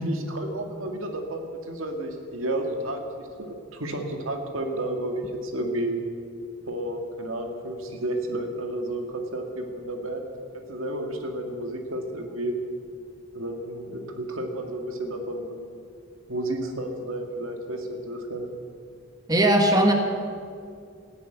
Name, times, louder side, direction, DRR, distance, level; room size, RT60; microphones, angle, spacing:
voice 1, 0.1-6.0 6.7-10.3 10.7-12.5 13.3-15.8 16.3-18.4, right 1 dB, 85° right, 4 dB, 2.0 m, -31 dB
voice 2, 19.3-19.9, right 1 dB, 20° right, 3 dB, 1.5 m, -18 dB
15.0 x 10.5 x 9.0 m, 2.3 s
head